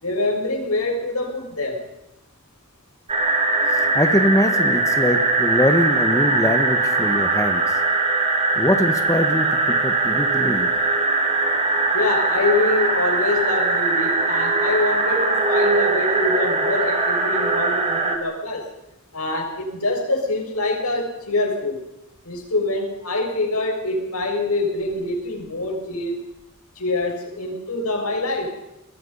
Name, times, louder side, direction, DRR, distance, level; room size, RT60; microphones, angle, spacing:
voice 1, 0.0-1.9 11.9-18.7 19.1-21.8 22.2-26.2 26.8-28.6, left 2 dB, 85° left, 1 dB, 7.0 m, -25 dB
sound 1, 3.1-18.2, right 3 dB, 30° right, 3.4 m, -21 dB
voice 2, 3.7-7.6 8.6-10.7, left 1 dB, 15° left, 6 dB, 1.5 m, -22 dB
26.5 x 21.5 x 5.7 m, 0.86 s
head